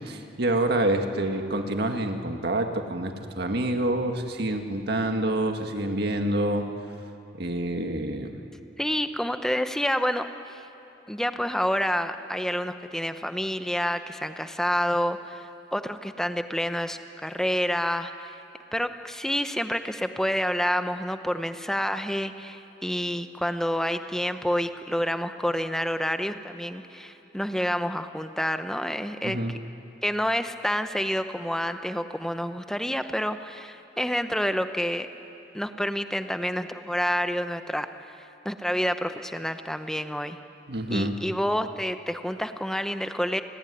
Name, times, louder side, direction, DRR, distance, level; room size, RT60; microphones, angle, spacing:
voice 1, 0.0-6.7 7.3-8.4 29.2-29.5 40.7-41.2, right 1 dB, 60° right, 5 dB, 1.9 m, -27 dB
voice 2, 8.8-10.7 11.1-18.4 18.7-29.4 30.0-35.1 35.5-38.2 38.4-40.4 40.9-43.4, equal, 5° left, 8 dB, 1.0 m, -28 dB
30.0 x 19.0 x 10.0 m, 2.9 s
head